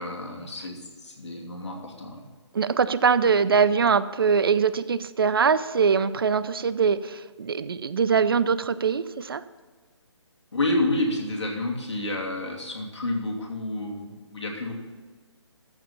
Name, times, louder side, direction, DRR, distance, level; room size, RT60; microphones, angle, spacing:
voice 1, 0.0-2.2 10.5-14.7, left 2 dB, 70° left, -1 dB, 2.7 m, -29 dB
voice 2, 2.5-9.4, right 6 dB, 50° right, 16 dB, 0.5 m, -22 dB
14.0 x 5.0 x 5.5 m, 1.4 s
figure-of-eight pair, 140°, 15 cm